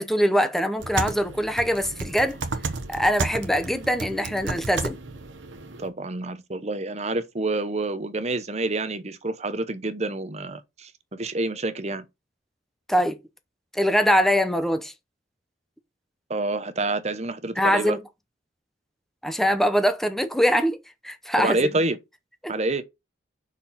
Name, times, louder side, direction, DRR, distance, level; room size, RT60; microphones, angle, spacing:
voice 1, 0.0-2.4 2.9-5.0 12.9-13.2 13.7-14.9 17.6-18.0 19.2-20.8 21.0-21.7 22.4-22.5, equal, ahead, 0.8 m, -23 dB
sound 1, 0.8-5.9, right 3 dB, 80° right, 1.1 m, -33 dB
voice 2, 5.8-12.1 16.3-18.0 21.4-22.0 22.5-22.8, right 2 dB, 35° right, 0.9 m, -28 dB
5.9 x 4.6 x 5.6 m
head